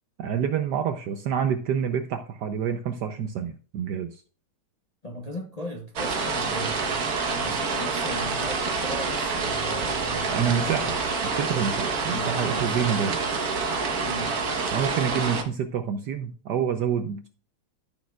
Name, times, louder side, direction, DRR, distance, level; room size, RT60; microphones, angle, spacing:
voice 1, 0.2-4.2 10.3-11.0 11.2-13.2 14.7-17.3, right 7 dB, 70° right, 1.0 m, -27 dB
voice 2, 5.0-7.1 7.3-10.8 12.1-13.2 14.0-14.4, equal, 30° left, 0.8 m, -38 dB
sound 1, 6.0-15.4, right 4 dB, 50° right, 1.5 m, -27 dB
14.0 x 6.4 x 2.3 m
omnidirectional pair, 2.3 m